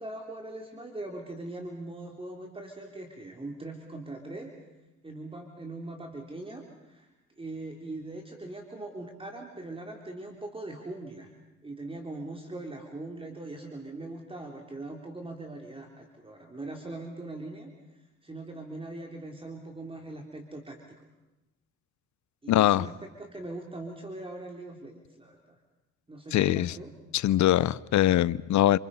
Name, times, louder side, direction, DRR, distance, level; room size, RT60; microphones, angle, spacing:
voice 1, 0.0-4.5 5.0-7.1 7.4-11.3 11.6-17.7 18.2-20.8 22.4-25.6 26.1-26.9, right 2 dB, 20° right, 2 dB, 3.4 m, -41 dB
voice 2, 22.5-22.9 26.3-26.8 27.1-28.8, left 13 dB, 70° left, 20 dB, 0.8 m, -22 dB
28.5 x 27.0 x 5.6 m, 1.0 s
cardioid pair, 90°, 30 cm